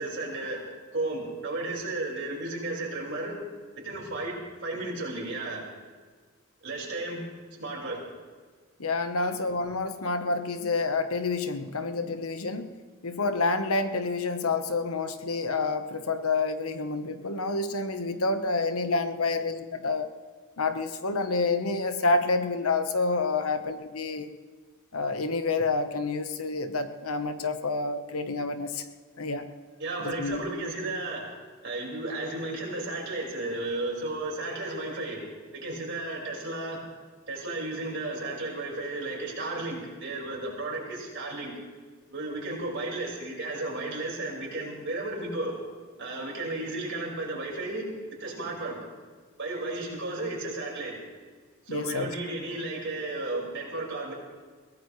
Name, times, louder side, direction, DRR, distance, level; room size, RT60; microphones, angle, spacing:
voice 1, 0.0-3.4 3.8-5.6 6.6-7.2 7.6-8.0 9.2-9.4 29.8-31.3 31.6-36.9 37.3-41.6 42.1-45.5 46.0-48.8 49.4-51.0 51.7-54.1, right 2 dB, 55° right, -3 dB, 5.1 m, -34 dB
voice 2, 8.8-12.7 13.0-20.1 20.6-24.3 24.9-28.8 29.2-29.5 30.0-30.4 51.7-52.1, left 3 dB, 75° left, 8 dB, 1.1 m, -28 dB
22.5 x 17.0 x 3.2 m, 1.5 s
head